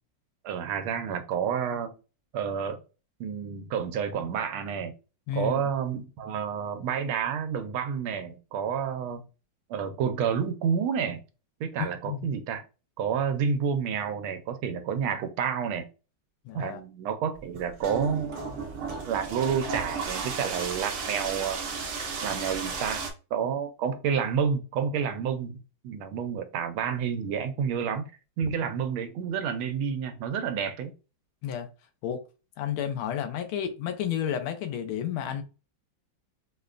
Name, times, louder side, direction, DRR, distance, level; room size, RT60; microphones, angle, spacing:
voice 1, 0.4-1.9 2.3-2.8 3.2-4.9 5.3-9.2 9.7-11.2 11.6-12.6 13.0-15.9 16.5-18.5 19.1-21.6 22.2-23.0 23.3-25.6 25.8-28.0 28.4-30.9, right 7 dB, 85° right, 1.5 m, -29 dB
voice 2, 5.3-5.6 12.1-12.3 16.4-16.8 31.4-31.7 32.0-32.2 32.6-35.4, left 9 dB, 85° left, 1.5 m, -31 dB
sound 1, 17.4-23.1, right 4 dB, 65° right, 0.7 m, -34 dB
5.3 x 2.1 x 2.4 m
omnidirectional pair, 2.2 m